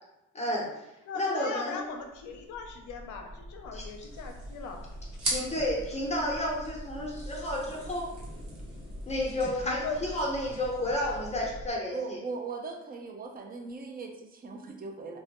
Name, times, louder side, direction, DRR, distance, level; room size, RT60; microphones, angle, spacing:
voice 1, 0.3-0.8 1.1-1.8 3.7-3.9 5.2-8.1 9.1-12.2, left 1 dB, 20° left, -2 dB, 0.6 m, -31 dB
voice 2, 1.1-4.8 9.6-10.0, left 4 dB, 75° left, 3 dB, 0.5 m, -39 dB
sound 1, 1.8-11.7, equal, 85° right, 1.0 m, -44 dB
sound 2, 3.8-11.4, right 2 dB, 60° right, 0.9 m, -42 dB
voice 3, 11.9-15.2, right 4 dB, 30° right, 2 dB, 0.4 m, -39 dB
2.2 x 2.0 x 2.9 m, 0.91 s
cardioid pair, 90°, 30 cm